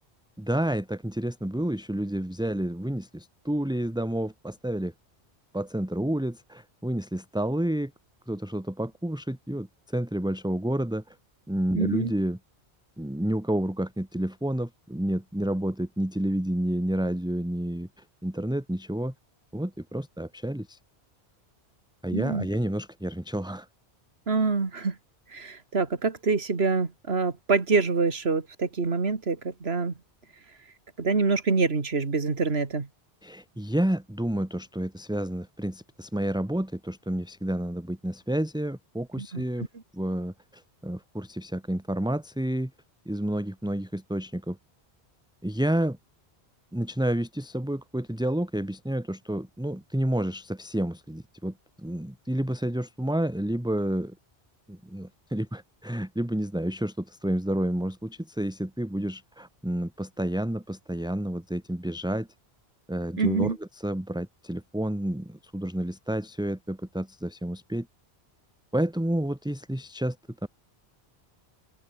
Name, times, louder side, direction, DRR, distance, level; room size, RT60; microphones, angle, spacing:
voice 1, 0.4-4.9 5.5-7.9 8.3-11.2 11.5-12.4 13.0-19.1 19.5-20.8 22.0-23.7 33.2-39.7 39.9-42.7 43.0-44.6 45.4-46.0 46.7-54.1 54.7-62.3 62.9-67.9 68.7-70.2 70.4-70.5, right 1 dB, 5° right, 1.3 m, -30 dB
voice 2, 11.7-12.1 22.1-22.5 24.3-25.0 25.3-29.9 31.0-32.9 39.2-39.4 63.2-63.6, right 4 dB, 75° right, 2.4 m, -26 dB
omnidirectional pair, 1.1 m